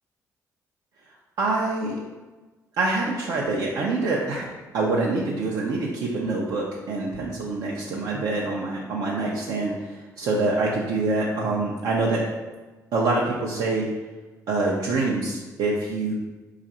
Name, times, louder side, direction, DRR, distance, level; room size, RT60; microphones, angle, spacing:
voice 1, 1.4-2.0 2.8-4.5 4.7-12.2 12.9-13.9 14.5-16.1, right 3 dB, 80° right, -4 dB, 0.6 m, -25 dB
5.0 x 2.5 x 4.2 m, 1.2 s
cardioid pair, 95°, 6 cm